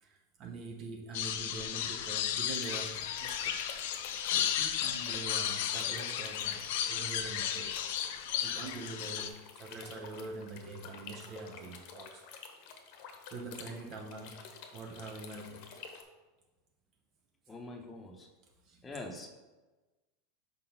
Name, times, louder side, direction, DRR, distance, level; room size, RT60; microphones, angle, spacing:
voice 1, 0.0-3.6 4.0-7.8 8.4-12.2 13.2-15.8 18.6-18.8, right 3 dB, 40° right, 1 dB, 0.7 m, -44 dB
sound 1, 1.1-9.3, left 10 dB, 70° left, 0.5 m, -34 dB
sound 2, 2.5-16.0, left 6 dB, 55° left, 0.9 m, -50 dB
voice 2, 17.5-18.3 18.8-19.3, left 2 dB, 15° left, 1 dB, 0.9 m, -44 dB
5.0 x 3.8 x 5.8 m, 1.2 s
supercardioid pair, 135°, 0 cm